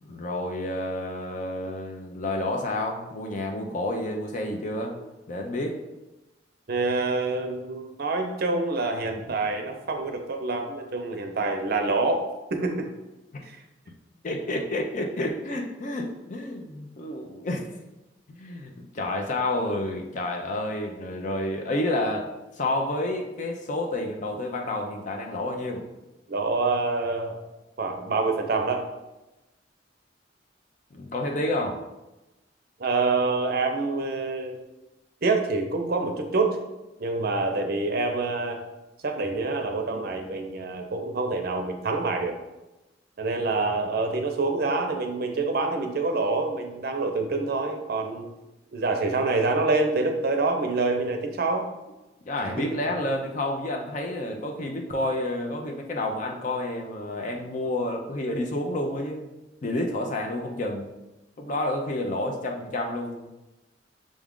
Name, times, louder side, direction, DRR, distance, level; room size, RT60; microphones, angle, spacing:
voice 1, 0.0-4.9 5.3-5.8 14.2-17.7 18.3-25.9 30.9-31.8 52.3-59.3 59.6-60.9 61.4-63.3, left 1 dB, 45° left, 2 dB, 0.5 m, -29 dB
voice 2, 6.7-12.9 13.5-13.6 26.3-27.4 27.8-28.8 32.8-34.6 35.2-36.6 37.0-38.6 39.0-42.4 43.2-48.3 48.7-51.7, right 3 dB, 55° right, 4 dB, 0.6 m, -26 dB
6.2 x 2.4 x 3.6 m, 1.0 s
head